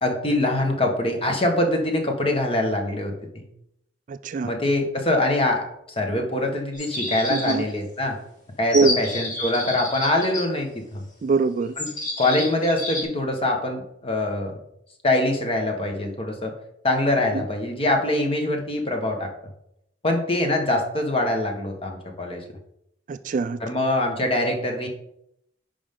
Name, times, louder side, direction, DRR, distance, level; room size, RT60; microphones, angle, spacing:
voice 1, 0.0-3.4 4.4-5.6 6.0-8.2 8.6-11.0 11.8-11.9 12.2-14.6 15.0-16.5 16.8-19.3 20.0-22.4 23.6-24.9, left 1 dB, 30° left, 2 dB, 1.3 m, -24 dB
voice 2, 4.1-4.5 7.3-7.7 8.7-9.0 11.2-11.7 17.3-17.4 23.1-23.6, right 4 dB, 45° right, 12 dB, 0.3 m, -22 dB
sound 1, 6.7-7.8 8.7-10.4 11.8-13.0, left 2 dB, 45° left, 2.8 m, -29 dB
9.9 x 5.2 x 3.7 m, 0.77 s
head